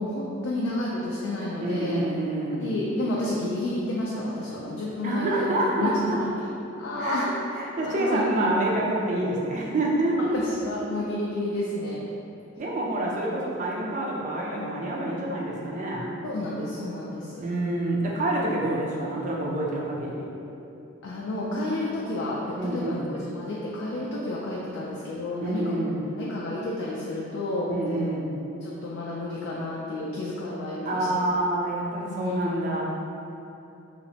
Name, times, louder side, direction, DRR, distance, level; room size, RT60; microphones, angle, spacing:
voice 1, 0.0-2.0 2.6-5.5 5.8-5.9 6.8-7.3 7.8-8.2 10.3-12.0 16.2-17.4 21.0-25.8 26.2-27.7 28.6-31.2 32.0-32.6, left 1 dB, 65° left, -5 dB, 0.3 m, -31 dB
voice 2, 1.6-2.7 5.0-6.2 7.0-7.3 7.5-10.4 12.6-16.1 17.4-20.3 22.6-23.0 25.4-26.0 27.7-28.3 30.8-32.8, right 1 dB, 40° right, -3 dB, 0.4 m, -27 dB
2.8 x 2.1 x 2.7 m, 2.8 s
head